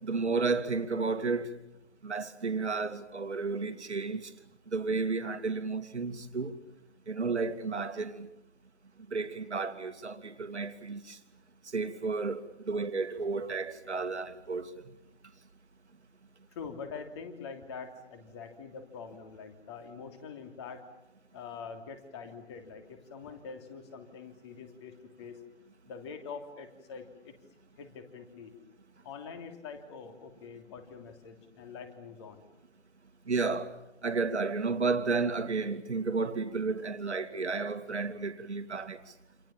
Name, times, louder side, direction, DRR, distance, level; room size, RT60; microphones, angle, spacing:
voice 1, 0.0-1.5 2.0-4.3 4.7-6.6 7.1-8.3 9.1-11.2 11.7-14.7 33.3-33.7 34.0-39.0, right 4 dB, 70° right, 2.6 m, -32 dB
voice 2, 16.5-20.8 21.3-25.4 25.9-27.3 27.8-28.5 29.0-32.4, left 5 dB, 25° left, 3.0 m, -44 dB
28.5 x 28.0 x 7.3 m
figure-of-eight pair, 155°, 35 cm